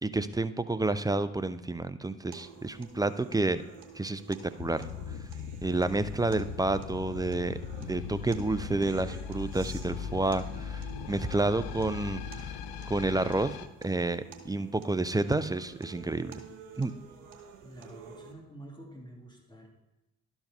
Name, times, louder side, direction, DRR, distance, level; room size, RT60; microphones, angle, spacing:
voice 1, 0.0-3.6 3.9-4.9 5.6-12.5 12.9-13.6 13.8-16.4 16.8-16.9, right 2 dB, 10° right, 12 dB, 0.5 m, -30 dB
sound 1, 2.3-18.3, right 6 dB, 85° right, 1.0 m, -51 dB
sound 2, 4.6-13.7, left 7 dB, 75° left, 0.7 m, -39 dB
voice 2, 17.6-19.7, right 1 dB, 10° left, -1 dB, 2.4 m, -48 dB
11.5 x 4.7 x 5.4 m, 0.96 s
hypercardioid pair, 45°, 38 cm